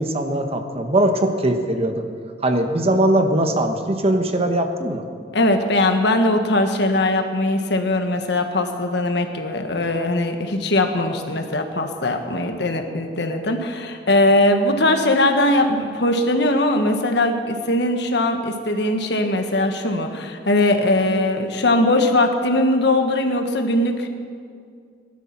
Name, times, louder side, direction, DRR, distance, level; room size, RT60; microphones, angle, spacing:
voice 1, 0.0-2.0 2.4-5.0, right 1 dB, 35° right, 6 dB, 1.2 m, -20 dB
voice 2, 5.3-24.1, left 1 dB, 65° left, 5 dB, 1.4 m, -20 dB
19.0 x 12.0 x 5.9 m, 2.2 s
head